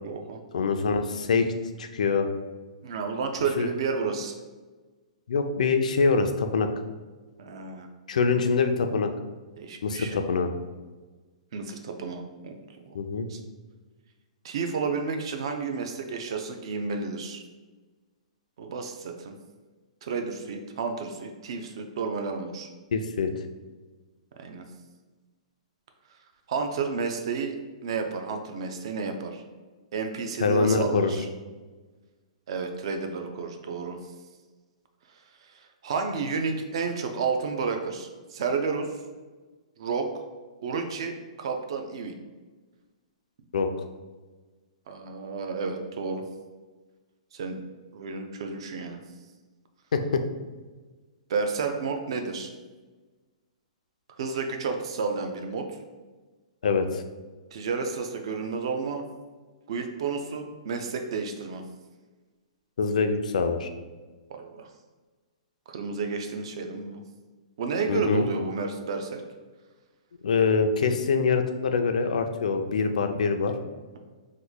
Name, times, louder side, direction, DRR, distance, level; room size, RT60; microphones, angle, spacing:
voice 1, 0.0-0.4 2.8-4.3 7.4-7.9 9.6-10.2 11.5-12.6 12.9-13.0 13.3-13.4 14.4-17.4 18.6-19.3 20.0-22.7 24.4-24.7 26.5-29.4 29.9-31.3 32.5-34.0 35.4-38.9 39.8-40.2 40.6-42.1 44.9-46.2 47.3-47.6 47.9-49.0 51.3-52.5 54.2-55.8 57.5-59.0 59.7-61.6 64.3-64.7 65.7-67.0 67.6-69.2, right 5 dB, 45° right, 5 dB, 0.4 m, -31 dB
voice 2, 0.5-1.5 1.8-2.3 3.6-3.7 5.3-6.7 8.1-9.1 9.8-10.5 12.9-13.3 22.9-23.3 30.4-31.1 43.5-43.7 49.9-50.2 56.6-57.0 62.8-63.7 67.9-68.2 70.2-73.5, left 4 dB, 85° left, 7 dB, 0.4 m, -24 dB
3.0 x 2.1 x 3.9 m, 1.3 s
hypercardioid pair, 175°, 4 cm